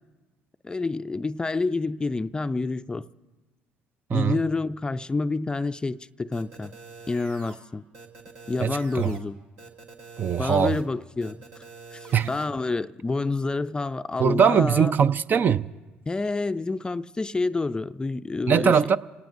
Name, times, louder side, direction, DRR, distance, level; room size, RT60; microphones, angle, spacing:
voice 1, 0.6-3.1 4.1-6.7 7.1-7.8 8.5-9.4 10.4-11.6 11.9-14.9 16.1-18.8, left 3 dB, 20° left, 0.4 m, -28 dB
sound 1, 6.3-7.6 7.9-9.2 9.6-10.8 11.2-12.4, right 4 dB, 75° right, 2.0 m, -45 dB
voice 2, 8.6-9.2 10.2-10.8 12.1-12.3 14.2-15.7 18.5-19.0, right 7 dB, 40° right, 0.4 m, -21 dB
28.0 x 18.0 x 2.6 m
hypercardioid pair, 65°, 5 cm